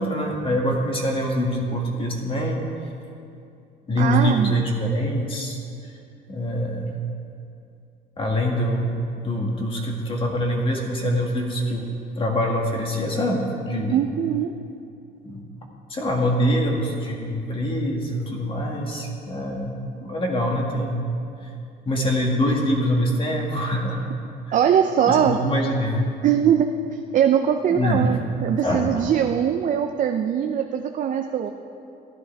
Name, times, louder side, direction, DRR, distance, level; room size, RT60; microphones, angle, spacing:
voice 1, 0.0-2.7 3.9-5.6 6.3-7.0 8.2-11.9 12.2-14.0 15.2-15.4 15.9-21.1 21.4-21.5 21.9-24.0 24.5-24.6 25.1-26.1 27.7-28.1 28.6-29.0, equal, 30° left, 0 dB, 2.1 m, -24 dB
voice 2, 4.0-4.6 13.9-14.5 24.5-25.4 26.2-26.7 27.1-31.5, right 9 dB, 50° right, 5 dB, 0.6 m, -21 dB
15.5 x 11.5 x 3.5 m, 2.5 s
cardioid pair, 110°, 17 cm